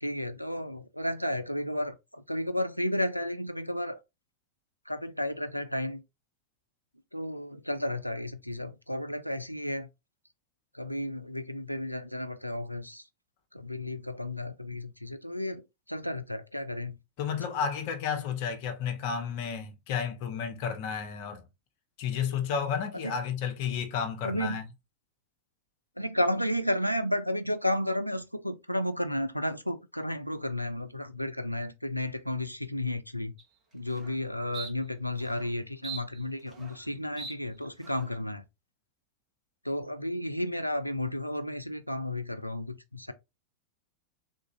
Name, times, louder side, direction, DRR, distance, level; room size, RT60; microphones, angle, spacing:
voice 1, 0.0-4.0 4.9-6.0 7.1-9.9 10.7-13.0 13.5-17.0 23.0-23.2 24.2-24.6 26.0-33.3 33.7-38.4 39.6-43.1, left 1 dB, 90° left, 0.4 m, -32 dB
voice 2, 17.2-21.4 22.0-24.7, left 7 dB, 50° left, 0.8 m, -32 dB
sound 1, 33.4-33.5 33.9-34.2 34.5-34.7 35.2-35.5 35.8-36.9 37.2-37.3 37.8-38.2, right 6 dB, 25° right, 1.2 m, -42 dB
3.7 x 2.5 x 3.0 m
figure-of-eight pair, 90°, 0 cm